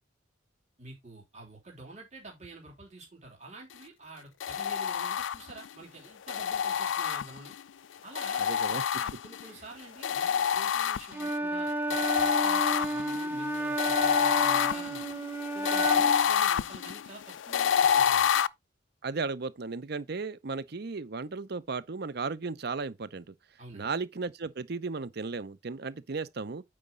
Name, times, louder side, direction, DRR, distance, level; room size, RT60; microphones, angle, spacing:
voice 1, 0.8-7.5 8.0-8.5 8.9-15.0 15.5-18.3 23.6-23.9, right 2 dB, 35° right, 3.0 m, -48 dB
sound 1, 4.4-5.7 6.3-7.6 8.1-9.5 10.0-11.3 11.9-18.5, left 8 dB, 75° left, 0.4 m, -27 dB
voice 2, 8.4-8.8 19.0-23.3 23.7-26.6, right 4 dB, 55° right, 0.6 m, -35 dB
Wind instrument woodwind instrument, 11.1-16.3, right 1 dB, 10° right, 1.0 m, -32 dB
8.7 x 5.0 x 3.8 m
head